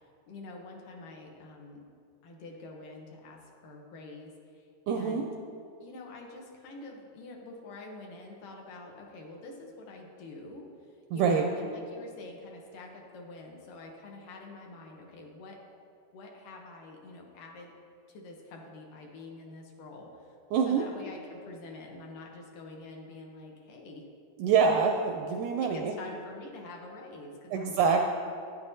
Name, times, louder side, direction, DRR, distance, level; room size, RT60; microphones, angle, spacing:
voice 1, 0.3-1.8 2.2-5.3 5.8-10.7 11.1-15.6 16.1-17.7 18.1-20.3 20.7-24.0 25.6-28.0, left 2 dB, 70° left, 0 dB, 2.4 m, -46 dB
voice 2, 4.9-5.2 11.1-11.5 20.5-20.8 24.4-25.9 27.5-28.0, right 6 dB, 80° right, 3 dB, 1.8 m, -25 dB
12.5 x 9.7 x 2.7 m, 2.4 s
omnidirectional pair, 4.1 m